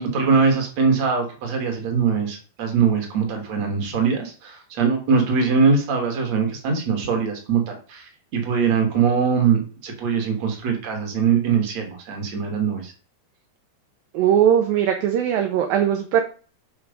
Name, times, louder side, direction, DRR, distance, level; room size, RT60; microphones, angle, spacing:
voice 1, 0.0-12.9, right 5 dB, 45° right, 3 dB, 2.9 m, -22 dB
voice 2, 14.1-16.2, right 9 dB, 70° right, 4 dB, 2.3 m, -19 dB
8.2 x 5.8 x 5.3 m, 0.37 s
omnidirectional pair, 5.0 m